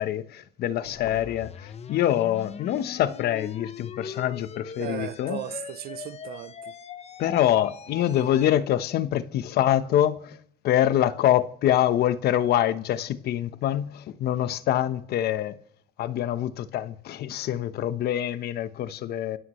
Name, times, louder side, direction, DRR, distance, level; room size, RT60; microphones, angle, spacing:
voice 1, 0.0-5.4 7.2-10.4 10.6-15.6 16.0-19.4, left 11 dB, 70° left, 1.1 m, -25 dB
sound 1, 0.9-8.6, left 7 dB, 40° left, 0.9 m, -41 dB
voice 2, 4.8-6.8 8.0-8.2, right 13 dB, 70° right, 0.7 m, -37 dB
26.5 x 14.0 x 3.2 m
cardioid pair, 110°, 17 cm